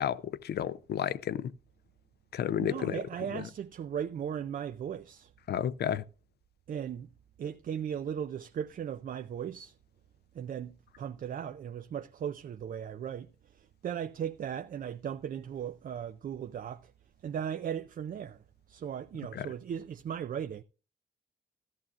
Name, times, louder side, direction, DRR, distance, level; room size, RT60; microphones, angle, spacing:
voice 1, 0.0-1.5 2.3-3.0 3.3-3.4 5.5-6.0 19.3-19.5, left 10 dB, 65° left, 0.6 m, -32 dB
voice 2, 2.6-5.3 6.7-7.1 7.4-9.7 10.3-13.3 13.5-16.9 17.2-18.4 18.7-20.6, right 8 dB, 50° right, 0.5 m, -37 dB
14.0 x 13.5 x 2.4 m
cardioid pair, 95°, 18 cm